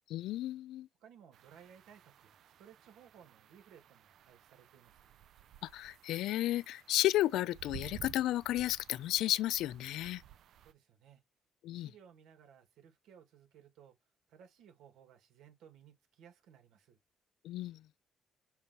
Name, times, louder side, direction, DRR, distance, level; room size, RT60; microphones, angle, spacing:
voice 1, 0.1-0.9 5.6-10.2 11.6-11.9 17.4-17.8, left 14 dB, 90° left, 0.3 m, -33 dB
voice 2, 1.0-5.0 10.6-11.2 11.7-14.0 14.3-17.0, right 8 dB, 90° right, 2.1 m, -60 dB
sound 1, 1.3-10.7, right 12 dB, 60° right, 0.4 m, -55 dB
6.9 x 2.9 x 5.1 m
cardioid pair, 155°, 0 cm